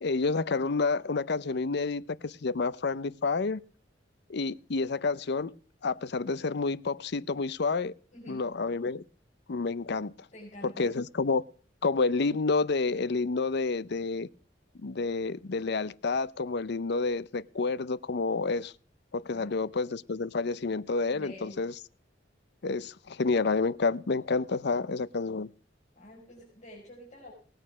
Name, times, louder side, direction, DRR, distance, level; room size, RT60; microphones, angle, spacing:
voice 1, 0.0-3.6 4.3-5.5 5.8-7.9 8.3-9.0 9.5-10.1 10.8-11.4 11.8-14.3 14.7-18.7 19.1-21.7 22.6-25.5, left 4 dB, 65° left, 0.6 m, -29 dB
voice 2, 8.1-8.5 10.3-10.9 19.3-19.6 21.1-21.6 25.9-27.3, left 1 dB, 40° left, 5.2 m, -48 dB
18.5 x 9.0 x 6.1 m
head